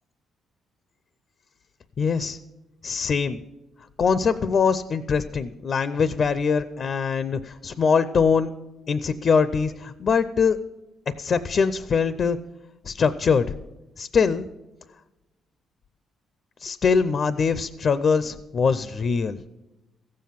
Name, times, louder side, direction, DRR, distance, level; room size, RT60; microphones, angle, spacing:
voice 1, 2.0-2.4 2.8-3.4 4.0-8.5 8.9-10.6 11.2-12.4 12.9-13.4 14.0-14.5 16.6-19.4, left 5 dB, 50° left, 14 dB, 0.5 m, -22 dB
15.5 x 7.5 x 5.7 m, 1.0 s
cardioid pair, 90°, 0 cm